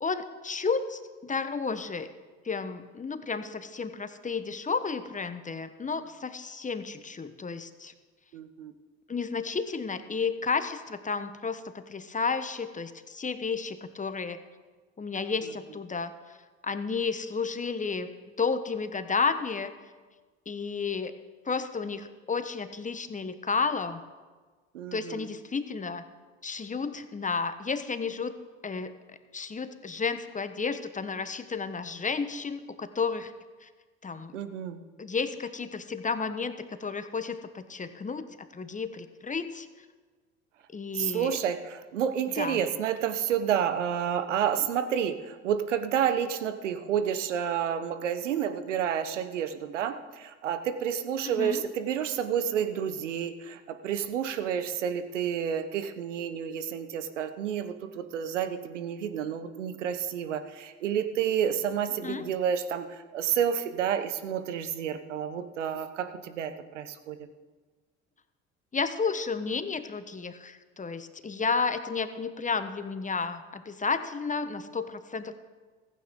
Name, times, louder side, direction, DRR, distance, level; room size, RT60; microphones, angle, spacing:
voice 1, 0.0-2.1 2.4-7.9 9.1-14.4 15.0-16.4 16.6-18.1 18.4-19.7 20.5-21.1 21.5-24.0 24.9-26.0 26.4-28.3 28.6-28.9 29.3-33.3 33.6-33.7 34.0-34.3 35.0-38.3 38.5-39.7 40.7-41.4 42.4-42.6 51.2-51.6 62.0-62.3 68.7-75.3, left 5 dB, 20° left, 10 dB, 1.2 m, -32 dB
voice 2, 8.3-8.7 24.7-25.3 34.3-34.8 40.9-62.9 63.1-67.2, right 8 dB, 85° right, 11 dB, 1.0 m, -30 dB
15.5 x 15.0 x 3.8 m, 1.4 s
hypercardioid pair, 65°, 36 cm